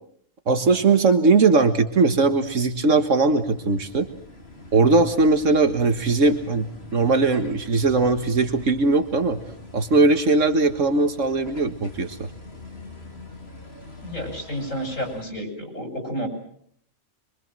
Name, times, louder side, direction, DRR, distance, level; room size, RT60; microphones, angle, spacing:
voice 1, 0.5-4.1 4.7-6.7 6.9-9.4 9.7-12.2, right 3 dB, 75° right, 8 dB, 1.9 m, -19 dB
sound 1, 1.7-15.2, left 2 dB, 55° left, 4.0 m, -44 dB
voice 2, 14.0-16.3, equal, 85° left, 3 dB, 7.6 m, -30 dB
25.5 x 24.5 x 7.6 m, 0.67 s
omnidirectional pair, 1.3 m